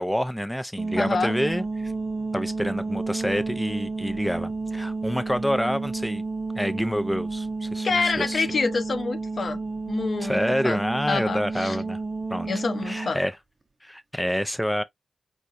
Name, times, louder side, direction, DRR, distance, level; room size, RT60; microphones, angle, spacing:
voice 1, 0.0-1.9 2.3-6.2 6.6-7.9 8.2-8.5 10.2-12.0 12.3-12.5 12.9-13.3 13.8-14.8, equal, 5° left, 0.4 m, -27 dB
sound 1, 0.8-13.1, right 3 dB, 45° right, 0.6 m, -31 dB
voice 2, 0.9-1.4 7.8-9.6 9.9-10.8 11.1-11.8 12.5-13.2, left 4 dB, 70° left, 0.6 m, -27 dB
4.5 x 2.1 x 2.5 m
cardioid pair, 50°, 0 cm